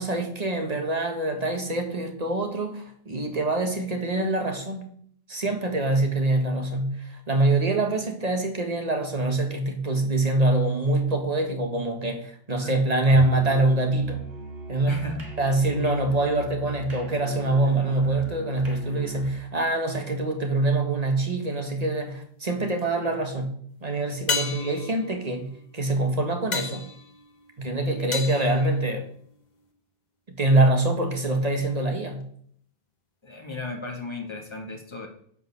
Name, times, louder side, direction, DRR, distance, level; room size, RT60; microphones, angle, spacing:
voice 1, 0.0-5.0 5.3-14.2 14.7-15.0 15.4-26.9 27.6-29.1 30.3-32.3, right 2 dB, 40° right, 4 dB, 1.7 m, -25 dB
Musical instrument, 13.1-19.4, right 3 dB, 75° right, 2.3 m, -39 dB
voice 2, 14.9-15.3 15.8-15.9 27.9-28.1 33.2-35.1, left 3 dB, 25° left, 2 dB, 1.9 m, -35 dB
sound 1, 22.0-22.6 24.3-29.4 33.9-34.0, left 4 dB, 45° left, 1.2 m, -34 dB
10.5 x 5.5 x 6.8 m, 0.63 s
omnidirectional pair, 1.0 m